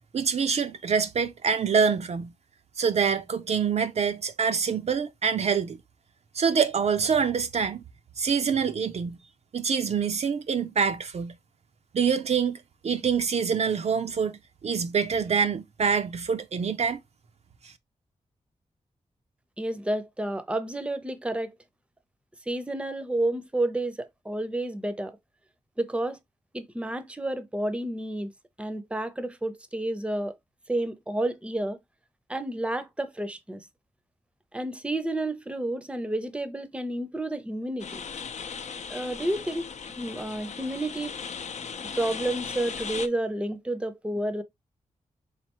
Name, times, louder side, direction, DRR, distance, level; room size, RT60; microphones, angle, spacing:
voice 1, 0.1-2.3 2.8-5.8 6.3-7.8 8.2-9.2 9.5-11.4 11.9-14.4 14.6-17.0, right 6 dB, 55° right, 0.4 m, -25 dB
voice 2, 19.6-21.5 22.5-25.1 25.8-26.2 26.5-28.3 28.6-30.3 30.7-31.8 32.3-33.6 34.5-38.0 38.9-41.1 42.0-44.4, right 1 dB, 10° right, 0.6 m, -30 dB
sound 1, 37.8-43.1, left 6 dB, 65° left, 0.5 m, -37 dB
3.9 x 3.2 x 2.9 m
cardioid pair, 75°, 13 cm